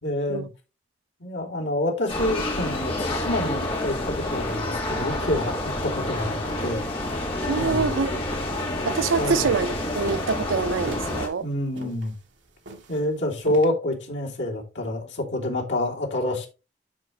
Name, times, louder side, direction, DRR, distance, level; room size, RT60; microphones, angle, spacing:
voice 1, 0.0-0.5 1.2-6.8 7.5-8.0 9.2-9.5 11.4-12.1 12.9-16.5, left 1 dB, 70° left, 3.2 m, -27 dB
sound 1, 2.1-11.3, left 1 dB, 30° left, 2.9 m, -28 dB
voice 2, 7.5-8.2 8.8-11.5, right 5 dB, 90° right, 0.5 m, -25 dB
sound 2, 8.3-13.7, right 1 dB, 70° right, 1.7 m, -40 dB
12.5 x 4.7 x 3.2 m
head